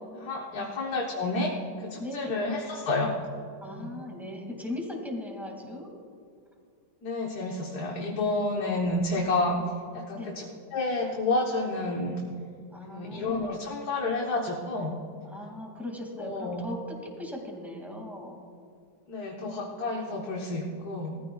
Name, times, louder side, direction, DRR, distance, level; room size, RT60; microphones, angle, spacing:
voice 1, 0.1-3.1 3.8-3.9 7.0-9.6 9.9-10.4 10.7-12.2 12.9-15.0 16.2-16.7 19.1-21.2, left 2 dB, 60° left, -1 dB, 1.6 m, -30 dB
voice 2, 2.0-2.4 3.6-5.9 10.1-10.3 12.7-13.6 15.2-18.4, left 1 dB, ahead, 0 dB, 1.9 m, -38 dB
18.5 x 14.5 x 2.3 m, 2.3 s
omnidirectional pair, 2.0 m